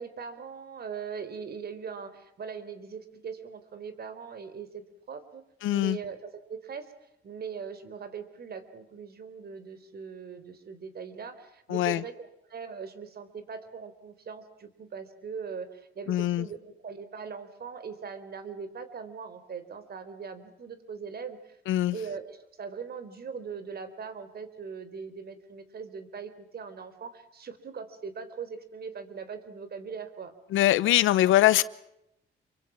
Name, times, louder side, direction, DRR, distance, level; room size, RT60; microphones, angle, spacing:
voice 1, 0.0-6.9 7.2-21.6 21.9-30.3, right 6 dB, 50° right, 11 dB, 4.0 m, -40 dB
voice 2, 5.6-6.0 11.7-12.0 16.1-16.5 21.7-22.0 30.5-31.6, left 14 dB, 85° left, 18 dB, 1.0 m, -22 dB
28.0 x 24.0 x 6.0 m, 0.81 s
cardioid pair, 90°, 20 cm